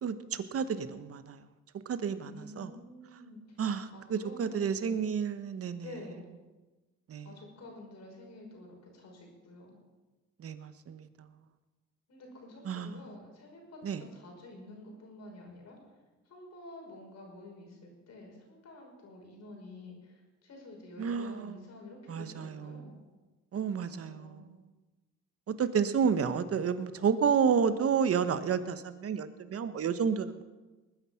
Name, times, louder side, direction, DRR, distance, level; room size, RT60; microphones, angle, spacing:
voice 1, 0.0-1.4 1.9-2.7 3.6-5.8 7.1-7.3 10.4-11.1 12.7-12.9 13.8-14.0 21.0-21.6 22.1-22.8 23.5-24.4 25.5-30.4, right 7 dB, 50° right, 11 dB, 1.1 m, -30 dB
voice 2, 2.2-3.6 3.9-5.0 5.8-6.3 7.2-9.8 12.1-15.8 16.3-23.0 23.8-24.5 26.9-27.9, left 2 dB, 60° left, 1 dB, 5.5 m, -49 dB
20.0 x 9.6 x 5.8 m, 1.2 s
cardioid pair, 90°, 30 cm